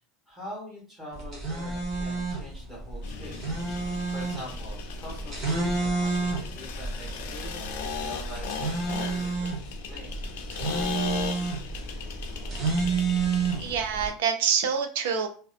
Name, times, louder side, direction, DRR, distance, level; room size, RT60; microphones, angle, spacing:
voice 1, 0.3-3.4 3.8-10.2, equal, 10° right, -6 dB, 1.1 m, -44 dB
sound 1, 1.1-14.1, right 4 dB, 30° right, 1.0 m, -30 dB
sound 2, 3.0-13.8, left 6 dB, 80° left, 0.4 m, -38 dB
voice 2, 13.6-15.3, right 6 dB, 85° right, 6 dB, 0.4 m, -26 dB
2.6 x 2.2 x 2.4 m, 0.41 s
supercardioid pair, 170°, 0 cm